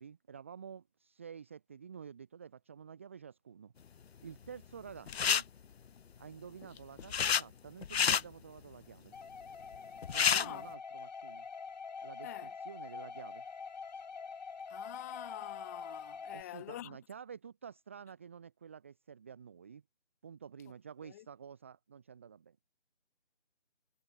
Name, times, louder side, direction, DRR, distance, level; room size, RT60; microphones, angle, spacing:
voice 1, 0.0-3.7 4.2-5.5 6.2-9.1 10.1-11.5 12.0-13.4 16.3-19.8 20.2-22.6, right 7 dB, 10° right, 0.9 m, -50 dB
sound 1, 5.1-5.4 6.6-7.4 7.8-8.2 9.7-9.8 10.0-10.5, left 7 dB, 70° left, 0.5 m, -28 dB
sound 2, 9.1-16.4, left 5 dB, 40° left, 3.4 m, -45 dB
voice 2, 12.2-12.5 14.7-17.0 21.0-21.3, left 15 dB, 15° left, 2.5 m, -46 dB
figure-of-eight pair, 155°, 32 cm